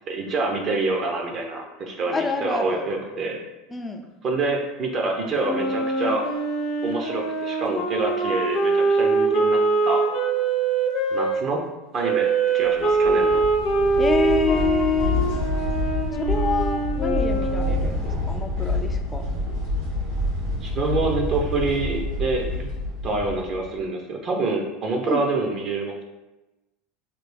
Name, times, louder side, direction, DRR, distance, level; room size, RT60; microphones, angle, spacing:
voice 1, 0.1-3.4 4.2-6.2 6.8-10.0 11.1-11.6 11.9-13.4 20.6-22.7 23.0-26.0, right 3 dB, 40° right, 1 dB, 0.6 m, -26 dB
voice 2, 2.1-2.9 3.7-4.1 14.0-15.2 16.1-19.2 25.0-25.2, left 4 dB, 15° left, 4 dB, 0.4 m, -26 dB
Wind instrument woodwind instrument, 5.4-11.3 12.0-17.8, right 4 dB, 60° left, 0.9 m, -23 dB
sound 1, 12.8-23.8, left 2 dB, 70° right, 1.5 m, -27 dB
3.2 x 2.2 x 3.2 m, 1.0 s
supercardioid pair, 125°, 0 cm